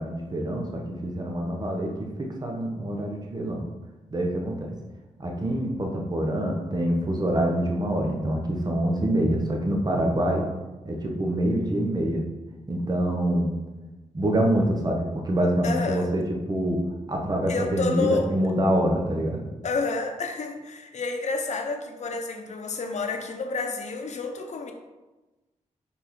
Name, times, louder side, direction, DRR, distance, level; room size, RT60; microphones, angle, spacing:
voice 1, 0.0-3.6 4.1-4.7 5.2-10.5 10.8-12.2 12.7-13.5 14.1-16.2 16.5-16.8 17.1-19.4, right 1 dB, 30° right, 1 dB, 1.1 m, -25 dB
voice 2, 15.6-16.1 17.5-18.3 19.6-24.7, left 3 dB, 65° left, 4 dB, 0.8 m, -29 dB
5.4 x 4.4 x 4.5 m, 1.1 s
wide cardioid pair, 95°, 13 cm